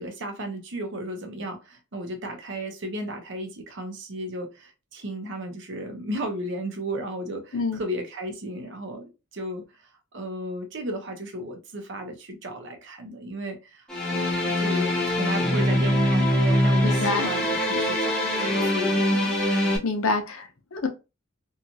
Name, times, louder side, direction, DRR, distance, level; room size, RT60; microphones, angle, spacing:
voice 1, 0.0-19.4, right 1 dB, 60° right, 0.7 m, -34 dB
sound 1, 13.9-19.8, left 1 dB, 5° left, 0.6 m, -23 dB
voice 2, 16.8-17.3 19.4-20.9, left 3 dB, 80° left, 0.7 m, -27 dB
2.8 x 2.3 x 2.6 m
head